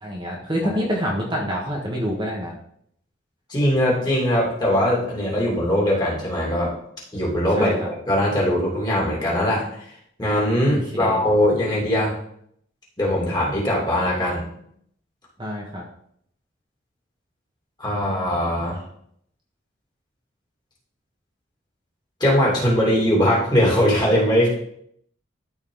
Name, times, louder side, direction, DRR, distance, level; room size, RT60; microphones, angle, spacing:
voice 1, 0.0-2.5 7.5-7.9 10.7-11.2 15.4-15.8, equal, 25° right, -3 dB, 1.4 m, -27 dB
voice 2, 3.5-6.7 7.1-9.8 10.2-12.2 13.0-14.5 17.8-18.8 22.2-24.5, equal, 20° left, -4 dB, 2.6 m, -21 dB
13.0 x 4.4 x 3.9 m, 0.69 s
head